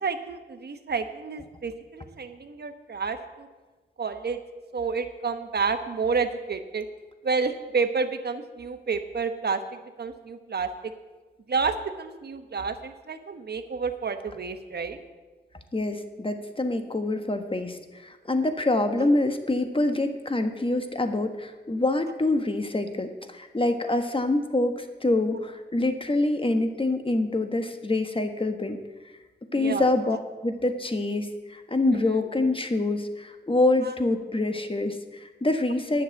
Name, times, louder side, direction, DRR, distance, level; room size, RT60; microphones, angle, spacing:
voice 1, 0.0-3.5 4.0-4.4 4.7-6.9 7.2-10.9 11.5-15.0 29.5-30.2 31.9-32.1 33.8-33.9, right 5 dB, 60° right, 8 dB, 1.1 m, -30 dB
voice 2, 15.7-28.8 29.5-30.2 30.4-36.0, left 2 dB, 30° left, 7 dB, 1.3 m, -26 dB
10.0 x 6.6 x 8.8 m, 1.2 s
cardioid pair, 50°, 19 cm